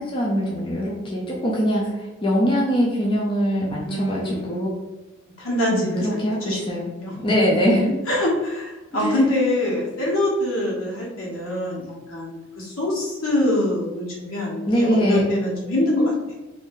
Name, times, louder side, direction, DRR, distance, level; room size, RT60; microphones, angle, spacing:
voice 1, 0.0-4.7 5.7-6.9 7.2-7.9 9.0-9.2 14.7-15.3, equal, 25° left, -4 dB, 0.5 m, -22 dB
voice 2, 3.8-4.7 5.4-7.2 8.1-16.3, left 1 dB, 80° left, -5 dB, 1.3 m, -24 dB
2.7 x 2.6 x 3.6 m, 1.1 s
head